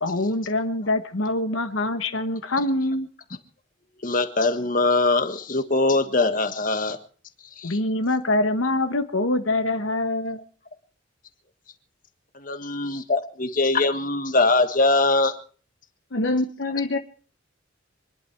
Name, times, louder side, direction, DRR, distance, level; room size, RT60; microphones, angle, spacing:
voice 1, 0.0-3.1 7.6-10.4, left 2 dB, 85° left, 1.3 m, -24 dB
voice 2, 4.0-7.0 7.6-7.8 12.4-15.3, left 2 dB, 45° left, 1.5 m, -22 dB
voice 3, 16.1-17.0, left 2 dB, 65° left, 1.0 m, -25 dB
25.5 x 11.5 x 4.6 m
head